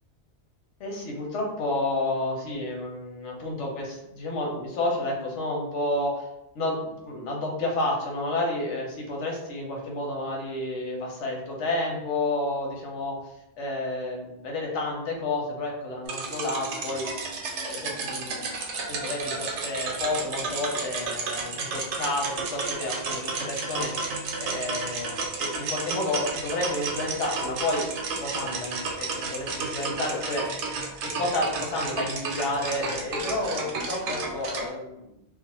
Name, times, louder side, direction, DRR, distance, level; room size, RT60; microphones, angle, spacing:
voice 1, 0.8-6.2 6.5-13.2 13.6-17.1 17.6-18.5 18.9-23.9 24.4-27.9 28.2-30.5 31.2-35.2, left 2 dB, 85° left, -1 dB, 1.0 m, -30 dB
sound 1, 16.1-34.7, right 4 dB, 85° right, 0.9 m, -32 dB
2.4 x 2.1 x 2.9 m, 0.86 s
omnidirectional pair, 1.2 m